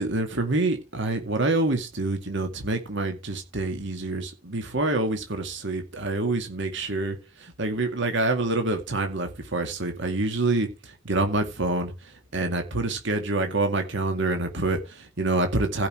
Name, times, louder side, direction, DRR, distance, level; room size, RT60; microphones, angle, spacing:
voice 1, 0.0-15.9, right 2 dB, 65° right, 2.3 m, -27 dB
15.5 x 5.7 x 4.5 m
head